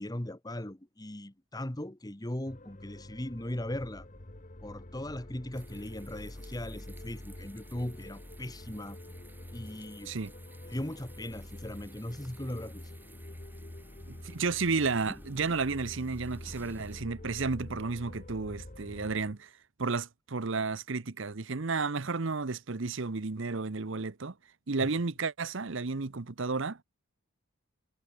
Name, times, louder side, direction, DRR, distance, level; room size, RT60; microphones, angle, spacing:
voice 1, 0.0-4.1 4.6-9.0 9.5-10.1 10.7-12.9 24.8-24.9, left 1 dB, 20° left, 1.3 m, -38 dB
sound 1, 2.4-19.3, left 1 dB, 35° left, 1.5 m, -47 dB
sound 2, 5.5-17.0, right 1 dB, 10° right, 1.8 m, -55 dB
voice 2, 14.1-19.5 19.8-24.3 24.7-26.8, right 4 dB, 60° right, 0.9 m, -32 dB
head